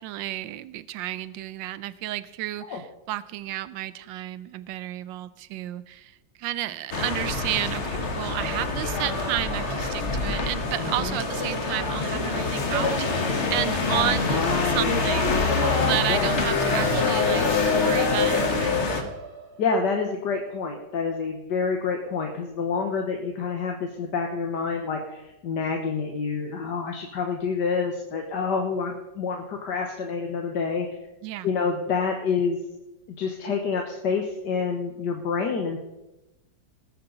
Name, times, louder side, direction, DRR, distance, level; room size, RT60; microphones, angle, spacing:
voice 1, 0.0-13.1 13.5-15.5 15.8-19.1 31.2-31.5, right 14 dB, 80° right, 16 dB, 1.3 m, -32 dB
sound 1, 6.9-19.0, left 4 dB, 40° left, 1.5 m, -25 dB
sound 2, 8.9-19.9, right 4 dB, 55° right, 1.9 m, -41 dB
voice 2, 10.8-11.1 14.3-14.9 16.1-16.3 19.6-30.9 31.4-32.6 33.2-35.8, left 5 dB, 65° left, 3 dB, 1.7 m, -27 dB
sound 3, 12.3-18.6, equal, 15° right, 6.2 m, -43 dB
19.0 x 10.0 x 3.9 m, 0.98 s
omnidirectional pair, 2.0 m